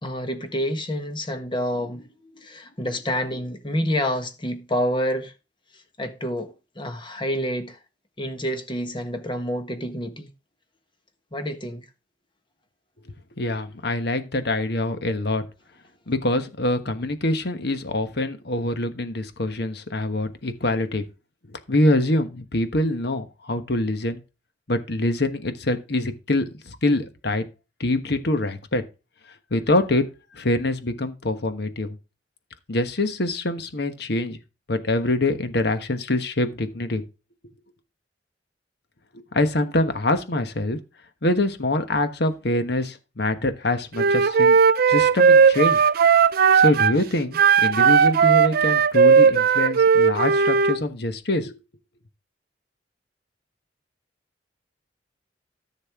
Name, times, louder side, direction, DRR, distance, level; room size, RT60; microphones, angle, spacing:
voice 1, 0.0-5.3 6.0-7.8 8.2-10.3 11.3-11.8, equal, 30° left, 1.5 m, -28 dB
voice 2, 13.4-15.4 16.1-21.0 21.5-24.2 24.7-27.5 27.8-28.8 29.5-30.1 30.3-32.0 32.7-34.4 34.7-37.0 39.1-40.8 41.2-44.6 44.9-45.8 46.5-51.6, left 1 dB, 65° left, 1.3 m, -24 dB
Wind instrument woodwind instrument, 44.0-47.0 47.3-50.8, right 6 dB, 55° right, 0.5 m, -17 dB
14.0 x 6.5 x 3.6 m
head